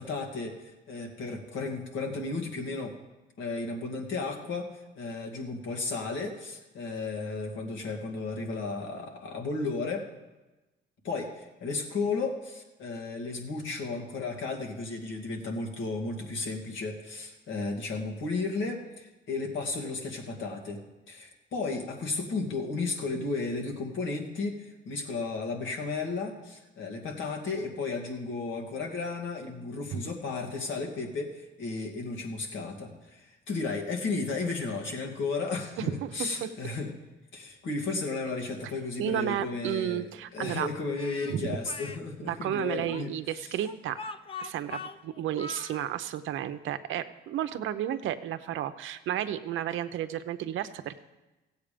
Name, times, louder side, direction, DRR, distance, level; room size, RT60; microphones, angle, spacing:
voice 1, 0.0-3.0 3.4-10.1 11.0-20.8 21.1-36.9 37.3-40.0 40.3-43.5, left 3 dB, 75° left, 1 dB, 2.3 m, -34 dB
voice 2, 35.8-36.5 39.0-40.7 41.3-41.6 42.3-44.0 44.4-51.0, right 11 dB, 80° right, 10 dB, 0.7 m, -32 dB
Speech, 40.9-42.0 42.9-45.9, left 3 dB, 30° left, 0.6 m, -41 dB
16.0 x 8.0 x 5.1 m, 1.1 s
cardioid pair, 90°, 20 cm